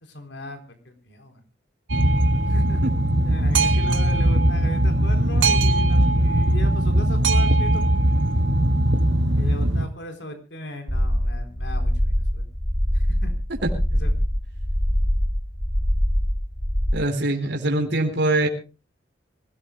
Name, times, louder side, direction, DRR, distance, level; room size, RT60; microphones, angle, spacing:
voice 1, 0.0-1.4 2.4-2.8 3.2-7.8 9.4-12.4 12.9-13.3 13.9-14.1, left 1 dB, 70° left, 6 dB, 4.1 m, -37 dB
Boat Water vehicle, 1.9-9.9, right 1 dB, 90° right, 1.6 m, -19 dB
sound 1, 10.9-16.9, equal, 30° left, 3.2 m, -23 dB
voice 2, 16.9-18.5, right 2 dB, 65° right, 3 dB, 4.1 m, -23 dB
26.0 x 17.5 x 2.2 m, 0.33 s
head